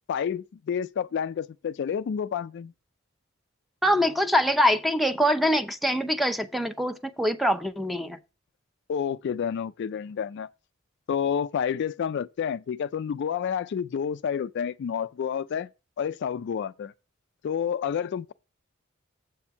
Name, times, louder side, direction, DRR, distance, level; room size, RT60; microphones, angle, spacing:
voice 1, 0.1-2.7 8.9-10.5 11.1-15.7 16.0-16.9 17.4-18.3, left 7 dB, 55° left, 0.3 m, -29 dB
voice 2, 3.8-8.2, equal, ahead, 0.6 m, -24 dB
7.7 x 4.4 x 7.0 m
head